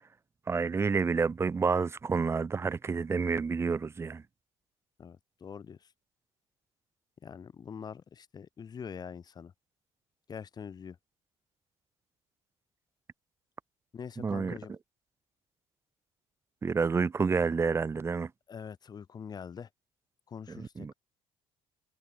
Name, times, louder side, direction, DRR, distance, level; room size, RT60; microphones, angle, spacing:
voice 1, 0.5-4.2 14.2-14.6 16.6-18.3 20.5-20.9, right 5 dB, 20° right, 0.7 m, -29 dB
voice 2, 5.0-5.9 7.2-9.5 10.3-11.0 13.9-14.7 18.5-19.7 20.3-20.9, left 7 dB, 35° left, 3.8 m, -44 dB
cardioid pair, 135°, 12 cm